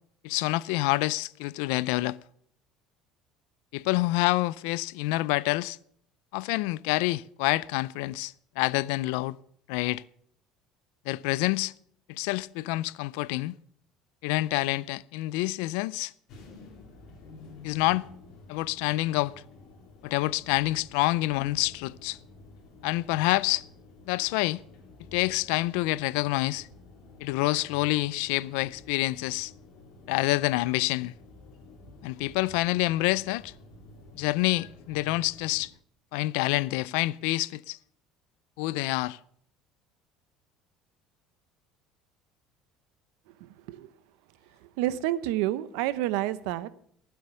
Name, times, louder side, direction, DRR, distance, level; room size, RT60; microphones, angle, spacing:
voice 1, 0.2-2.2 3.7-5.8 6.3-9.4 9.7-10.0 11.1-11.7 12.1-13.6 14.2-16.1 17.6-18.1 18.5-19.3 20.0-22.2 22.8-23.6 24.1-24.6 25.1-26.7 27.2-29.5 30.1-31.1 32.0-33.5 34.1-35.7 36.1-37.8 38.6-39.2, left 19 dB, 85° left, 0.4 m, -27 dB
sound 1, 16.3-35.7, left 2 dB, 45° left, 3.8 m, -51 dB
voice 2, 43.4-43.9 44.8-46.7, right 14 dB, 80° right, 0.8 m, -29 dB
15.5 x 7.8 x 6.9 m
cardioid pair, 180°, 0 cm